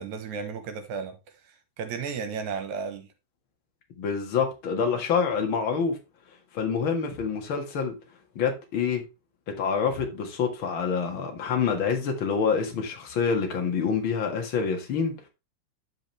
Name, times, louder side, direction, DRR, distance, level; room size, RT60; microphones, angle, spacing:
voice 1, 0.0-3.1, right 6 dB, 75° right, 2.6 m, -34 dB
voice 2, 4.0-6.0 6.5-7.9 8.4-9.0 9.5-15.3, left 6 dB, 45° left, 2.3 m, -27 dB
10.5 x 5.3 x 3.4 m
omnidirectional pair, 3.4 m